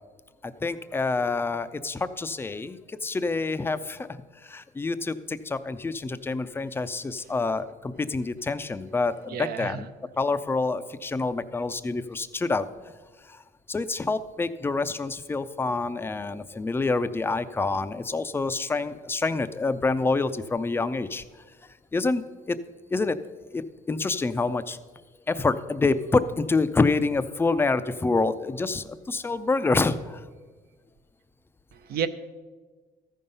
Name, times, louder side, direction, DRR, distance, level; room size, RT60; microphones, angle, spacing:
voice 1, 0.4-4.1 4.4-9.9 10.2-12.7 13.3-13.4 13.7-21.2 21.9-22.6 22.9-23.2 23.5-23.6 23.9-24.8 25.3-30.3, left 3 dB, 15° left, 13 dB, 0.4 m, -27 dB
voice 2, 9.3-9.8 31.7-32.1, right 8 dB, 65° right, 11 dB, 0.6 m, -30 dB
13.5 x 5.5 x 5.4 m, 1.4 s
cardioid pair, 110°, 17 cm